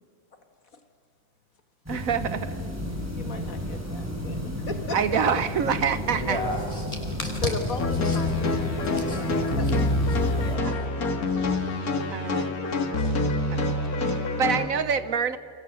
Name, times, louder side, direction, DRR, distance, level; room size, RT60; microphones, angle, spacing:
sound 1, 1.9-10.6, equal, 10° right, 4.3 m, -33 dB
voice 1, 1.9-2.6 4.9-6.4 10.6-10.7 12.1-12.5 13.5-13.6 14.1-15.4, right 6 dB, 70° right, 13 dB, 1.4 m, -26 dB
voice 2, 3.2-5.0 7.4-9.3 9.6-9.9 10.7-10.8 11.3-11.4 12.9-13.1, left 4 dB, 70° left, 6 dB, 2.0 m, -36 dB
voice 3, 5.9-8.4 8.9-9.2 9.6-9.7 10.1-10.9 13.3-13.4, left 1 dB, 25° left, 0 dB, 5.8 m, -34 dB
sound 2, 7.8-14.6, left 2 dB, 85° left, 2.5 m, -26 dB
30.0 x 24.0 x 8.1 m, 2.2 s
omnidirectional pair, 1.5 m